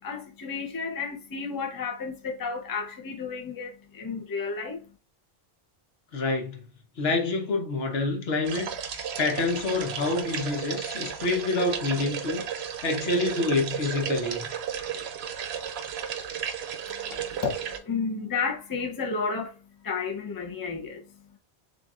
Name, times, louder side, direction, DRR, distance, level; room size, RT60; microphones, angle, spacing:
voice 1, 0.0-4.8 16.9-19.5 19.8-21.0, left 5 dB, 25° left, 0.6 m, -32 dB
voice 2, 6.1-6.7 7.0-8.7 9.2-12.5 12.8-14.5, left 3 dB, 70° left, 1.1 m, -27 dB
sound 1, 8.4-17.8, right 8 dB, 80° right, 0.9 m, -34 dB
6.6 x 2.5 x 2.4 m
omnidirectional pair, 1.1 m